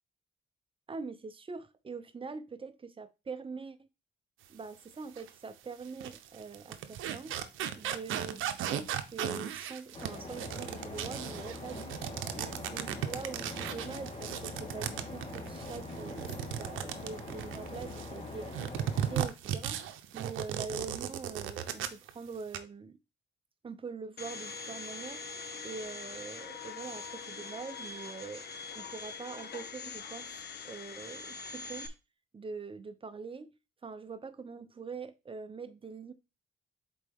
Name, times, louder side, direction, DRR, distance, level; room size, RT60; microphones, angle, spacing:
voice 1, 0.9-3.9 4.5-7.3 7.8-12.0 12.3-19.8 20.1-23.0 23.6-25.2 25.6-28.4 28.8-31.9 32.3-33.5 33.8-36.1, right 4 dB, 25° right, 0.8 m, -44 dB
sound 1, 5.2-5.3 5.8-18.1 18.5-22.1 22.4-22.6, right 10 dB, 85° right, 0.7 m, -36 dB
sound 2, 9.9-19.2, left 2 dB, 30° left, 1.9 m, -43 dB
Domestic sounds home sounds, 24.2-31.9, left 5 dB, 55° left, 1.0 m, -43 dB
6.7 x 4.4 x 3.5 m
cardioid pair, 90°, 20 cm